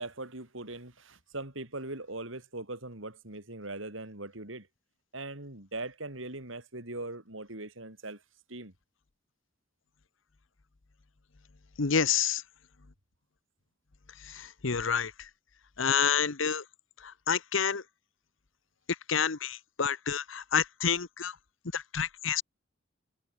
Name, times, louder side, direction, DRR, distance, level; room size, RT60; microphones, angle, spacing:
voice 1, 0.0-4.7 5.1-8.2 8.5-8.7, right 2 dB, 75° right, 5.2 m, -40 dB
voice 2, 11.8-12.4 14.3-15.1 15.8-16.6 17.0-17.8 19.1-21.3 21.7-22.4, left 7 dB, 75° left, 1.0 m, -28 dB
head